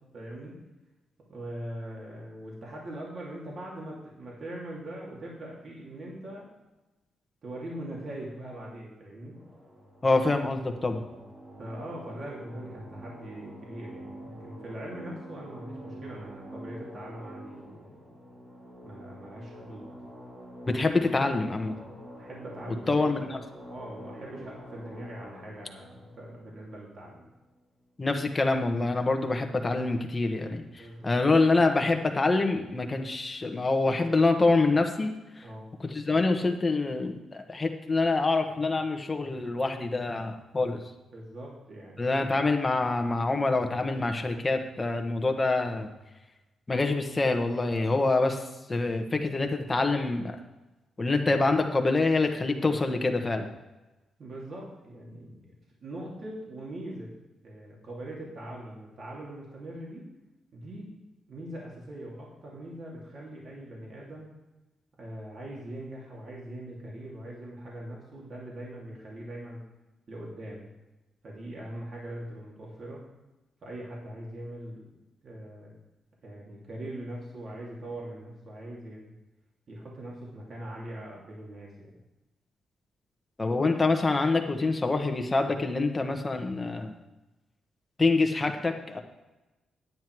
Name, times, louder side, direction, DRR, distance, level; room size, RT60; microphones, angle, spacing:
voice 1, 0.1-0.6 1.3-6.5 7.4-9.4 11.6-18.0 18.8-19.9 22.2-23.0 23.7-27.2 30.8-31.1 35.4-35.7 41.1-42.2 54.2-55.5 55.8-57.1 57.4-60.1 60.5-60.9 61.3-64.3 65.0-69.6 70.1-70.7 71.2-73.0 73.6-74.8 75.2-75.7 76.2-79.1 79.7-81.9, right 1 dB, 50° right, -4 dB, 2.7 m, -41 dB
sound 1, 9.3-27.5, equal, 35° right, 2.6 m, -46 dB
voice 2, 10.0-11.0 20.7-21.7 22.9-23.4 28.0-35.4 35.8-40.8 42.0-45.9 46.7-50.4 51.0-53.5 83.4-86.9 88.0-89.0, left 3 dB, 25° left, 4 dB, 1.2 m, -26 dB
9.5 x 9.3 x 4.6 m, 1.1 s
cardioid pair, 100°, 0 cm